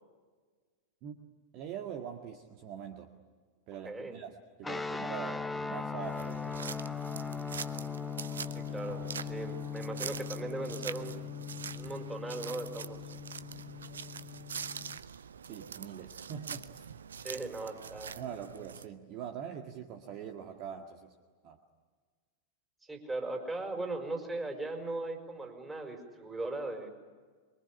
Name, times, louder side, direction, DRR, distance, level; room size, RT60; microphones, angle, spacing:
voice 1, 1.5-3.1 3.7-6.4 15.5-17.0 18.2-21.1 21.4-21.6, right 8 dB, 40° right, 5 dB, 1.9 m, -43 dB
sound 1, 4.6-15.0, left 6 dB, 5° left, 1.0 m, -39 dB
sound 2, 6.0-18.9, right 7 dB, 70° right, 0.8 m, -44 dB
voice 2, 8.5-11.2 11.7-13.0 17.2-18.2 22.9-26.9, right 2 dB, 10° right, 4 dB, 4.9 m, -38 dB
25.5 x 23.5 x 9.9 m, 1.5 s
figure-of-eight pair, 90°, 0 cm